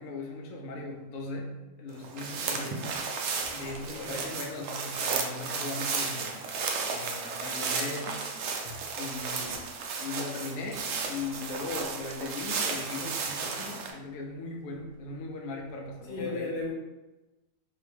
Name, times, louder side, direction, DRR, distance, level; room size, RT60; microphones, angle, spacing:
voice 1, 0.0-2.8 3.5-6.5 6.9-8.3 9.0-9.7 10.0-16.5, left 3 dB, 65° left, 1 dB, 0.9 m, -39 dB
sound 1, 2.0-13.9, right 5 dB, 70° right, 0.8 m, -34 dB
voice 2, 2.4-2.8 3.7-4.3 8.6-8.8 16.1-16.7, left 2 dB, 90° left, -2 dB, 1.6 m, -36 dB
3.7 x 3.0 x 3.3 m, 1.1 s
omnidirectional pair, 1.8 m